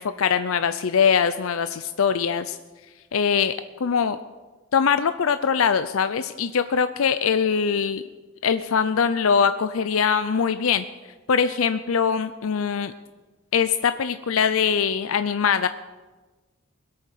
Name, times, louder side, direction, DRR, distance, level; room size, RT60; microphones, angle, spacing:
voice 1, 0.0-2.6 3.1-3.5 3.8-4.2 4.7-8.0 8.4-10.8 11.3-12.9 13.5-15.7, left 6 dB, 80° left, 11 dB, 0.5 m, -22 dB
20.5 x 8.8 x 6.5 m, 1.3 s
head